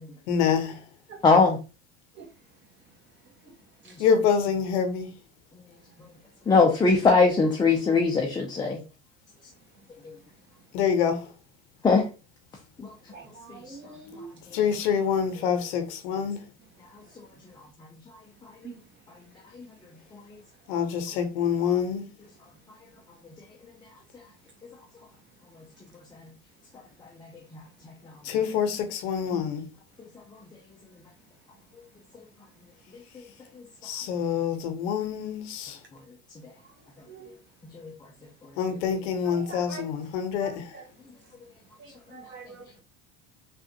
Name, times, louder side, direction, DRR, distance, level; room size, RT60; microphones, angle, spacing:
voice 1, 0.3-0.8 4.0-5.1 10.7-11.3 14.5-16.4 20.7-22.1 28.2-29.7 33.8-35.8 38.6-40.8, left 7 dB, 80° left, 0.8 m, -26 dB
voice 2, 1.2-1.6 6.5-8.8 11.8-12.0 12.8-12.9 29.3-29.4 37.8-37.9, left 4 dB, 15° left, 0.5 m, -20 dB
voice 3, 13.1-14.3 17.0-17.1 18.6-18.8 37.1-37.3 39.2-39.8 40.4-40.8 41.8-42.8, right 5 dB, 35° right, 1.1 m, -45 dB
3.4 x 2.4 x 2.7 m
supercardioid pair, 105°, 33 cm